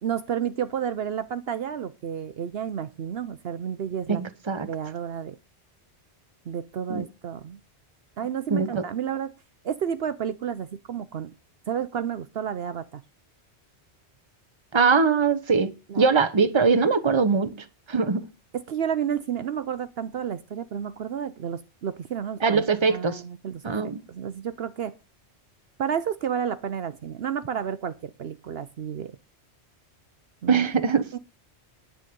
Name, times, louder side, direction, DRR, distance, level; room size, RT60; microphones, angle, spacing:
voice 1, 0.0-4.2 4.6-5.4 6.5-7.6 8.2-9.3 9.6-11.3 11.7-13.0 15.9-16.1 18.5-22.6 22.9-24.9 25.8-29.1 30.4-30.7 31.1-31.2, right 8 dB, 65° right, 0.9 m, -31 dB
voice 2, 4.1-4.7 6.9-7.1 8.5-8.8 14.7-18.3 22.4-23.2 23.6-24.0 30.5-31.2, right 5 dB, 25° right, 1.0 m, -22 dB
10.5 x 8.4 x 5.2 m
omnidirectional pair, 1.2 m